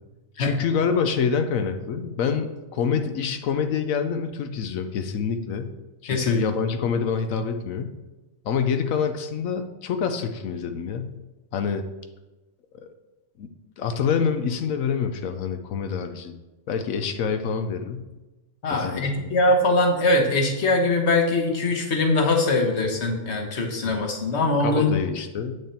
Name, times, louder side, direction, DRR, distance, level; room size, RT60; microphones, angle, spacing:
voice 1, 0.4-5.7 6.0-7.9 8.4-11.1 11.5-11.9 13.4-13.5 13.8-16.3 16.7-18.1 18.7-19.3 23.8-24.1 24.6-25.6, left 6 dB, 80° left, 7 dB, 1.1 m, -26 dB
voice 2, 6.1-6.4 18.6-24.9, left 2 dB, 55° left, 2 dB, 1.5 m, -22 dB
8.6 x 6.5 x 4.3 m, 1.1 s
omnidirectional pair, 1.4 m